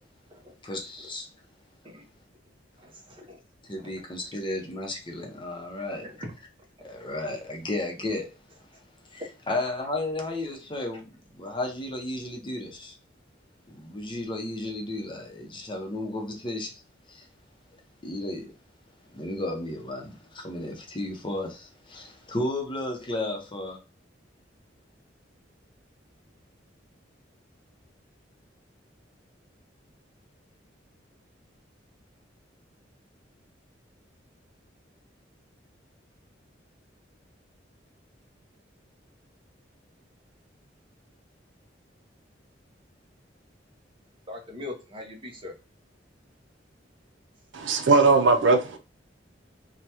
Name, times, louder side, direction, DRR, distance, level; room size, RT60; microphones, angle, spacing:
voice 1, 0.6-1.3 3.7-6.1 6.8-8.3 9.1-13.0 13.7-16.7 17.1-17.2 18.0-18.5 19.1-23.8, left 2 dB, 25° left, 0.7 m, -33 dB
voice 2, 2.8-3.4 3.9-4.0 6.0-6.3 44.3-45.5, left 2 dB, 30° right, 0.8 m, -41 dB
voice 3, 47.5-48.8, right 3 dB, 80° right, 0.5 m, -19 dB
3.3 x 2.2 x 2.8 m
head